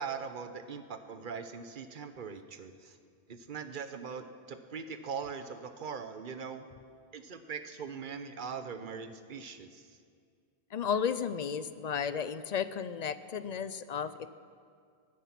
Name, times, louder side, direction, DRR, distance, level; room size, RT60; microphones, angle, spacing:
voice 1, 0.0-3.0 3.3-6.6 7.1-10.0, right 6 dB, 50° right, 9 dB, 1.0 m, -41 dB
voice 2, 10.7-14.1, left 7 dB, 50° left, 14 dB, 0.6 m, -33 dB
20.0 x 12.0 x 5.9 m, 2.2 s
omnidirectional pair, 1.1 m